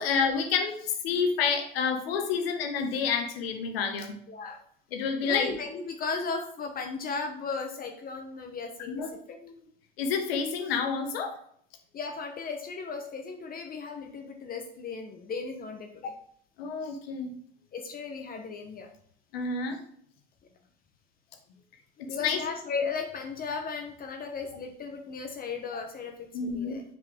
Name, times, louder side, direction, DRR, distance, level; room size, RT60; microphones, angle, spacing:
voice 1, 0.0-4.2 4.9-5.5 8.9-9.5 10.0-11.4 16.6-17.3 19.3-19.8 22.0-22.4 26.3-26.8, left 5 dB, 85° left, 6 dB, 1.3 m, -29 dB
voice 2, 4.3-4.6 5.2-9.0 11.9-16.1 17.7-18.9 22.0-26.1 26.4-26.8, left 4 dB, 30° left, 4 dB, 0.9 m, -36 dB
6.7 x 4.6 x 3.5 m, 0.62 s
supercardioid pair, 110°, 29 cm